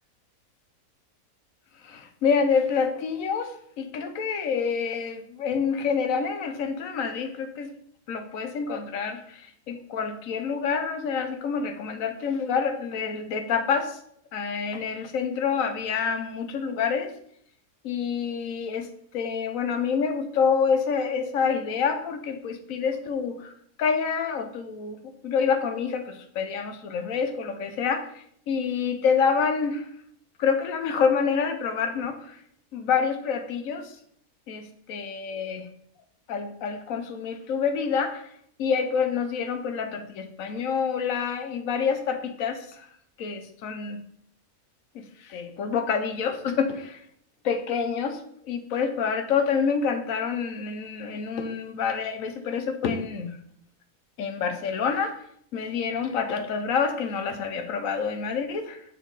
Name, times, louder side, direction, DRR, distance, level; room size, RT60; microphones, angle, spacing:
voice 1, 1.8-7.7 8.1-14.0 14.3-17.1 17.8-23.5 23.8-29.9 30.4-32.4 32.7-34.0 34.5-35.7 36.3-38.3 38.6-42.9 43.2-44.0 44.9-47.0 47.4-53.4 54.2-55.2 55.5-58.8, left 6 dB, 70° left, 8 dB, 1.1 m, -27 dB
6.7 x 4.6 x 3.9 m, 0.68 s
omnidirectional pair, 1.6 m